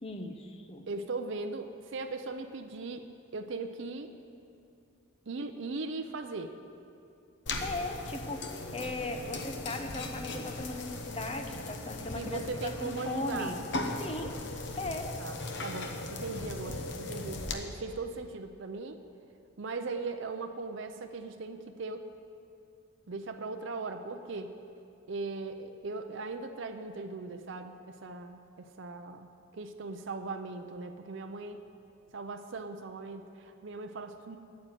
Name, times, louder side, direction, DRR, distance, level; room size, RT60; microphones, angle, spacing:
voice 1, 0.0-0.9 7.6-8.5 8.7-13.6 14.0-14.3 14.7-15.1, left 2 dB, 25° left, 5 dB, 0.7 m, -38 dB
voice 2, 0.9-3.1 3.3-4.1 5.3-6.5 8.8-8.9 12.1-13.6 15.2-15.4 15.6-19.0 19.6-22.1 23.1-24.5 25.1-29.3 29.5-31.6 32.1-34.4, right 3 dB, 60° right, 6 dB, 0.5 m, -39 dB
sound 1, 7.5-17.5, left 2 dB, 55° left, 0.9 m, -38 dB
9.4 x 7.7 x 9.1 m, 2.6 s
head